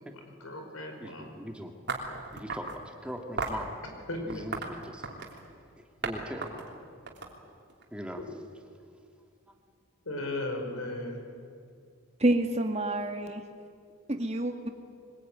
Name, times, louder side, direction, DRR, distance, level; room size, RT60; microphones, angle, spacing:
voice 1, 0.1-1.3 4.1-4.4 10.1-11.2, left 1 dB, 85° left, 3 dB, 5.6 m, -36 dB
voice 2, 1.0-1.7 2.3-3.7 4.3-5.1 5.8-6.7 7.9-8.2, equal, 5° right, 3 dB, 1.9 m, -40 dB
sound 1, 1.9-2.8 3.4-3.6 4.3-5.4 6.0-6.1 6.4-7.8, right 4 dB, 55° right, 3.3 m, -35 dB
voice 3, 12.2-13.4 14.1-14.7, right 1 dB, 30° right, 5 dB, 1.9 m, -28 dB
24.0 x 21.0 x 9.4 m, 2.3 s
head